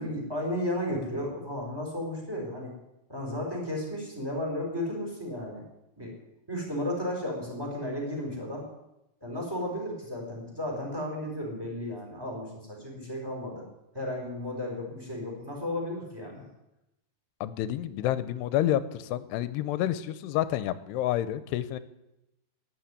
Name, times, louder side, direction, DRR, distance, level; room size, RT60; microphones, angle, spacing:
voice 1, 0.0-2.7 3.1-5.6 6.0-6.1 6.5-8.6 9.2-13.6 13.9-16.4, left 1 dB, 5° right, -1 dB, 4.1 m, -34 dB
voice 2, 17.4-21.8, left 12 dB, 80° left, 14 dB, 2.7 m, -29 dB
12.0 x 9.4 x 9.9 m, 0.91 s
omnidirectional pair, 4.9 m